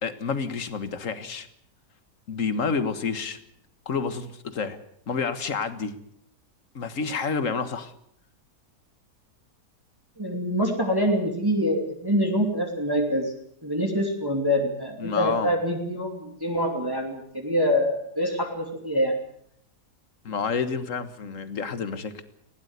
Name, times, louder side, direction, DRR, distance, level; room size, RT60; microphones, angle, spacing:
voice 1, 0.0-1.5 2.3-3.4 3.8-4.8 5.1-5.9 6.7-7.9 15.0-15.5 20.2-22.2, left 5 dB, 55° left, 11 dB, 1.8 m, -29 dB
voice 2, 10.2-13.3 13.6-19.2, equal, 15° right, 2 dB, 2.7 m, -25 dB
19.5 x 17.0 x 8.2 m, 0.70 s
omnidirectional pair, 1.7 m